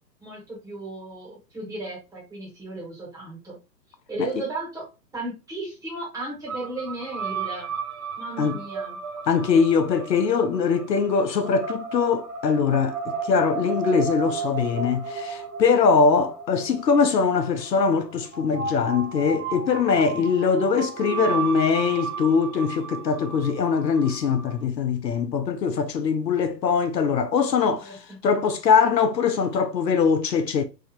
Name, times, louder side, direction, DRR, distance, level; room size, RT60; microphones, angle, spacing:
voice 1, 0.2-3.6 4.1-4.9 5.1-7.7 8.2-9.0 19.9-20.2 27.8-28.2, right 2 dB, 5° right, 1.4 m, -35 dB
sound 1, 6.5-24.6, right 5 dB, 60° right, 0.7 m, -34 dB
voice 2, 9.3-30.6, left 5 dB, 75° left, 0.7 m, -22 dB
3.5 x 2.7 x 2.3 m
figure-of-eight pair, 120°, 50 cm